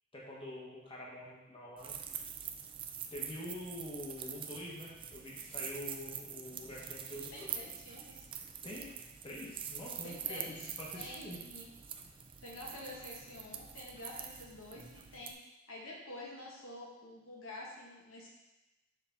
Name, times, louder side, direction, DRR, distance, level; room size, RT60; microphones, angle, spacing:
voice 1, 0.1-1.9 3.1-7.5 8.6-8.9 9.2-11.4, left 1 dB, 25° left, -5 dB, 1.2 m, -45 dB
sound 1, 1.8-15.3, right 8 dB, 25° right, 0.3 m, -45 dB
voice 2, 7.1-8.3 10.0-11.6 12.4-15.4 15.7-18.3, left 1 dB, 75° left, -4 dB, 1.4 m, -48 dB
6.4 x 4.2 x 3.6 m, 1.0 s
head